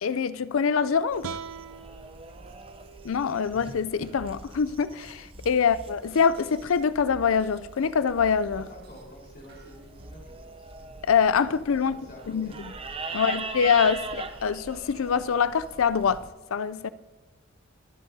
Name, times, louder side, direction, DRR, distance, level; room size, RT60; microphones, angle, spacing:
voice 1, 0.0-1.4 3.0-8.7 11.0-12.5 13.1-16.2 16.5-16.9, left 6 dB, 80° left, 0.4 m, -24 dB
sound 1, 1.1-16.3, right 4 dB, 25° right, 0.6 m, -42 dB
sound 2, 1.2-4.4, right 6 dB, 85° right, 0.5 m, -43 dB
sound 3, 2.5-2.6 2.8-3.4 4.2-4.3 5.3-6.5 7.1-7.6 8.2-9.0 9.5-10.2, right 1 dB, 50° right, 1.5 m, -48 dB
voice 2, 8.5-10.7 11.7-12.6 13.0-13.3, left 1 dB, 45° left, 4.3 m, -48 dB
24.0 x 10.5 x 2.8 m
head